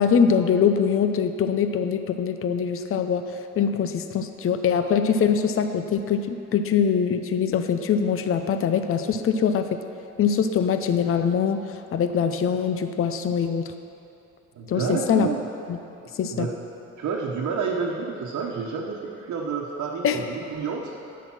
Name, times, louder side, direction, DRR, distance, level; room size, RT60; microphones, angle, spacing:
voice 1, 0.0-9.8 10.2-13.7 14.7-15.3 15.7-15.8 16.1-16.5 20.0-20.2, left 7 dB, 45° left, 8 dB, 0.6 m, -23 dB
voice 2, 14.6-15.4 16.3-16.5 17.0-20.9, right 5 dB, 65° right, -3 dB, 1.1 m, -29 dB
10.5 x 8.4 x 5.8 m, 2.9 s
cardioid pair, 90°, 30 cm